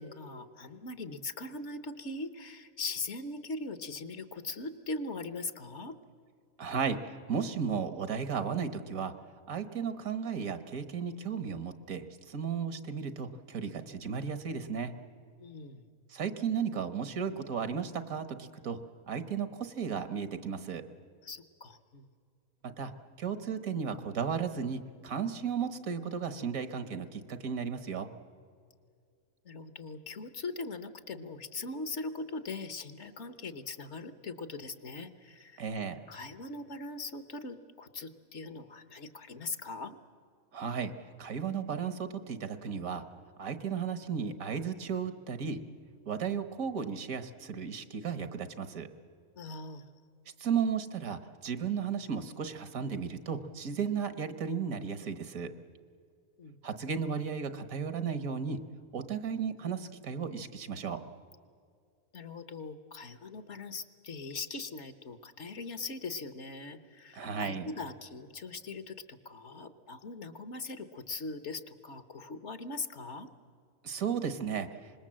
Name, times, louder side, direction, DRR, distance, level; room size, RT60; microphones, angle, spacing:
voice 1, 0.0-6.0 15.4-15.8 21.2-22.1 29.4-35.6 36.1-40.0 49.4-49.9 56.4-56.6 62.1-73.3, left 3 dB, 55° left, 11 dB, 1.3 m, -41 dB
voice 2, 6.6-9.1 9.5-14.9 16.1-18.8 19.1-20.8 22.6-22.9 23.2-28.1 35.6-36.0 40.5-40.9 41.2-43.0 43.4-45.6 46.1-48.9 50.4-55.5 56.6-58.6 58.9-61.0 67.1-67.7 73.8-74.8, right 6 dB, 75° right, 10 dB, 1.6 m, -34 dB
25.5 x 20.5 x 7.5 m, 2.3 s
omnidirectional pair, 1.5 m